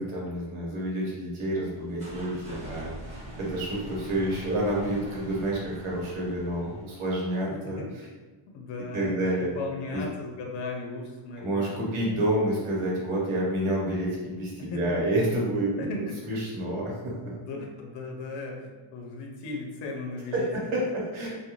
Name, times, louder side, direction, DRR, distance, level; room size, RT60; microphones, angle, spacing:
voice 1, 0.0-7.8 8.9-9.5 9.9-10.0 11.4-15.7 16.3-17.1 20.3-21.3, right 1 dB, 75° right, -4 dB, 1.0 m, -29 dB
sound 1, 1.5-7.1, right 1 dB, 15° right, 0.7 m, -43 dB
voice 2, 7.5-8.0 8.5-12.1 14.6-15.0 15.8-16.2 17.4-20.9, left 3 dB, 60° left, 1 dB, 0.6 m, -37 dB
2.4 x 2.2 x 3.0 m, 1.3 s
cardioid pair, 150°, 49 cm